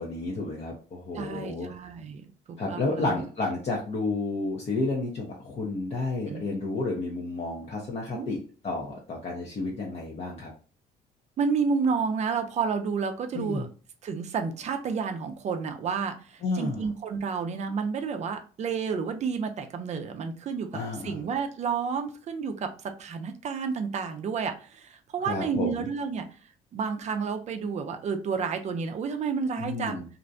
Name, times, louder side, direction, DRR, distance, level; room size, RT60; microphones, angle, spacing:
voice 1, 0.0-1.7 2.6-10.5 13.3-13.7 16.4-16.8 20.7-21.2 25.2-25.9 29.6-30.0, left 3 dB, 40° left, -2 dB, 0.6 m, -31 dB
voice 2, 1.1-3.3 6.3-6.4 8.1-8.3 11.4-13.7 14.0-26.3 26.7-30.1, right 5 dB, 40° right, 6 dB, 0.5 m, -30 dB
2.5 x 2.1 x 2.5 m, 0.38 s
cardioid pair, 110°, 17 cm